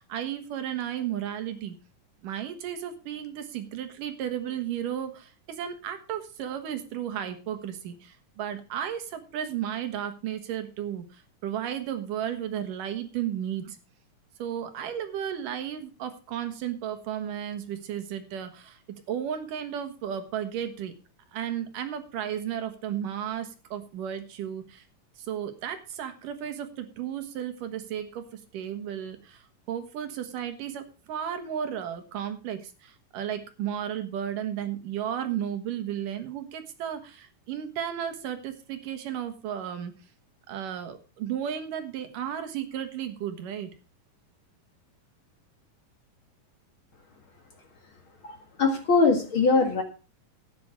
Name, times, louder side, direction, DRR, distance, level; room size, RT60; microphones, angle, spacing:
voice 1, 0.0-1.7 2.2-11.0 11.4-13.8 14.4-18.8 19.1-20.9 21.3-24.8 25.2-28.2 28.5-39.9 40.5-43.7, right 9 dB, 75° right, 8 dB, 3.0 m, -34 dB
voice 2, 48.2-49.8, left 4 dB, 45° left, 5 dB, 2.1 m, -22 dB
12.5 x 9.5 x 4.6 m, 0.34 s
omnidirectional pair, 3.8 m